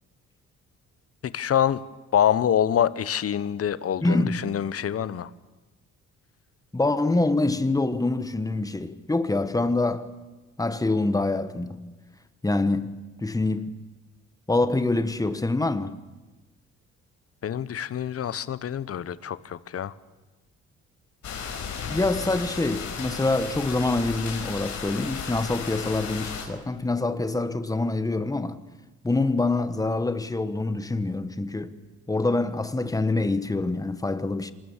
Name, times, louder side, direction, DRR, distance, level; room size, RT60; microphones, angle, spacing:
voice 1, 1.2-1.8 2.1-5.3 17.4-19.9, left 9 dB, 50° left, 1.0 m, -25 dB
voice 2, 4.0-4.5 6.7-10.1 10.6-11.9 12.4-13.7 14.5-16.0 21.9-28.6 29.0-31.7 32.1-34.5, left 2 dB, 10° left, 1.4 m, -25 dB
sound 1, 21.2-26.5, left 6 dB, 70° left, 5.2 m, -34 dB
26.0 x 19.5 x 7.4 m
cardioid pair, 90°, 30 cm